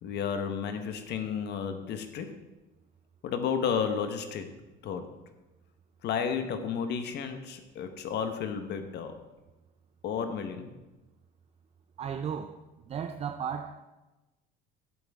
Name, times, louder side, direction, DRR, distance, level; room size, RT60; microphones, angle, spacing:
voice 1, 0.0-2.3 3.2-4.4 4.8-5.0 6.0-9.2 10.0-10.7, left 7 dB, 60° left, 1.2 m, -32 dB
voice 2, 12.0-13.8, right 7 dB, 30° right, 0.5 m, -35 dB
11.5 x 8.1 x 3.6 m
cardioid pair, 105°, 20 cm